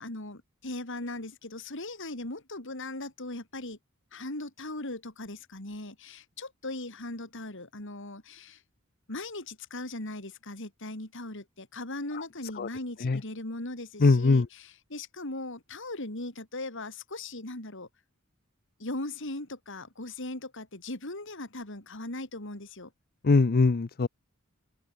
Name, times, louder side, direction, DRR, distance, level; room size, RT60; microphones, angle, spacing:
voice 1, 0.0-3.8 4.1-8.6 9.1-17.9 18.8-22.9, left 2 dB, 60° left, 4.5 m, -39 dB
voice 2, 14.0-14.5 23.2-24.1, left 3 dB, 45° left, 0.6 m, -21 dB
open air
head